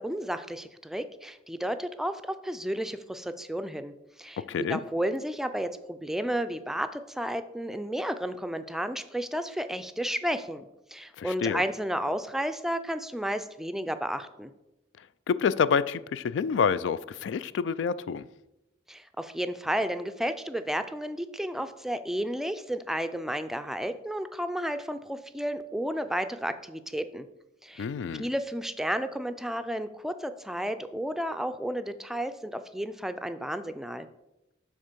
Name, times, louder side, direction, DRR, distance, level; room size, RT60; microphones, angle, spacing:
voice 1, 0.0-3.9 4.2-4.4 4.7-14.5 18.9-27.3 27.6-27.9 28.2-34.1, equal, ahead, 0.4 m, -32 dB
voice 2, 4.4-4.8 11.2-11.6 15.3-18.3 27.8-28.3, left 6 dB, 80° left, 0.3 m, -28 dB
7.9 x 3.6 x 6.6 m
head